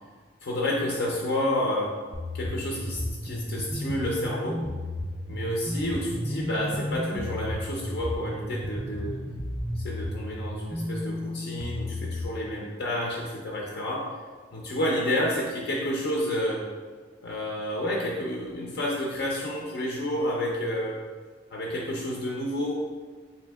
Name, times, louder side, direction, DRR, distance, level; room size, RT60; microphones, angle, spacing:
voice 1, 0.4-2.0 2.3-4.6 5.3-9.2 9.7-14.1 14.5-16.6 17.2-21.0 21.5-22.8, left 1 dB, 60° left, -3 dB, 0.5 m, -30 dB
sound 1, 2.1-12.2, left 1 dB, 5° right, 0.4 m, -33 dB
3.5 x 2.7 x 3.4 m, 1.5 s
head